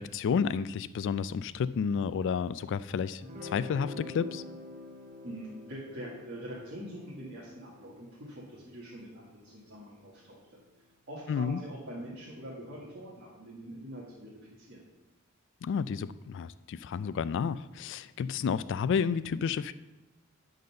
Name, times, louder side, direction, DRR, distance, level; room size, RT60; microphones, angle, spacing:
voice 1, 0.0-4.4 11.3-11.6 15.6-19.7, left 6 dB, 55° left, 15 dB, 0.3 m, -31 dB
Guitar, 3.2-10.3, left 2 dB, 35° right, 1.1 m, -48 dB
voice 2, 5.2-10.4 11.1-14.9, equal, 50° right, -7 dB, 1.8 m, -44 dB
10.5 x 4.0 x 6.7 m, 1.0 s
head